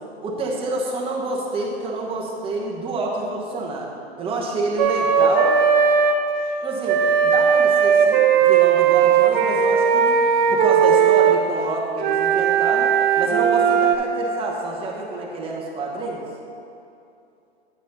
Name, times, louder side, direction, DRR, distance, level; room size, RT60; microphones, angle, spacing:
voice 1, 0.2-5.5 6.6-10.2 10.5-16.2, right 2 dB, 15° right, -2 dB, 1.2 m, -28 dB
Wind instrument woodwind instrument, 4.8-6.2 6.8-11.4 12.0-13.9, right 7 dB, 45° right, 0.7 m, -17 dB
9.7 x 6.3 x 4.0 m, 2.7 s
hypercardioid pair, 135°, 33 cm